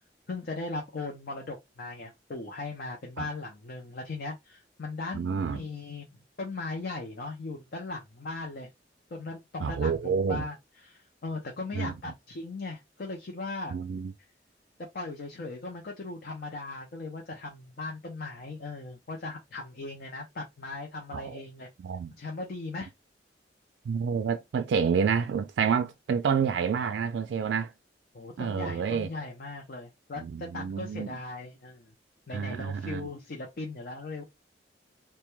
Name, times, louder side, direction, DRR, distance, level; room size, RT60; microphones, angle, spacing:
voice 1, 0.3-6.1 6.4-8.7 9.1-10.5 10.8-13.8 14.9-21.7 22.2-22.9 28.1-31.9 32.3-34.2, left 3 dB, 55° left, 0.5 m, -38 dB
voice 2, 5.1-5.6 9.6-10.4 11.8-11.9 13.7-14.1 21.1-21.4 21.8-22.1 23.9-27.7 28.4-29.1 30.2-31.2 32.3-33.1, right 6 dB, 80° right, 0.3 m, -29 dB
2.2 x 2.2 x 2.9 m
head